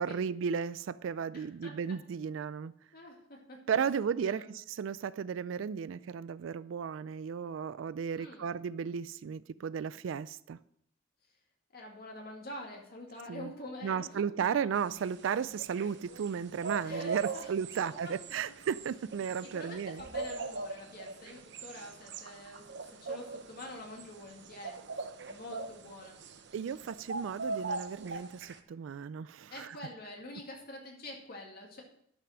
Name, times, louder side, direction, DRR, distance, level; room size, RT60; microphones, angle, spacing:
voice 1, 0.0-2.7 3.7-10.6 13.3-13.5 13.8-20.0 26.5-29.8, right 7 dB, 85° right, 0.4 m, -34 dB
voice 2, 1.3-1.7 2.9-3.6 4.2-4.5 8.1-8.5 11.7-14.2 16.8-18.1 19.4-26.2 29.5-31.8, left 1 dB, 50° left, 2.3 m, -46 dB
sound 1, 14.7-28.6, right 3 dB, 65° right, 0.8 m, -42 dB
Bass drum, 20.0-21.4, equal, 35° right, 2.2 m, -61 dB
11.0 x 6.1 x 6.1 m
head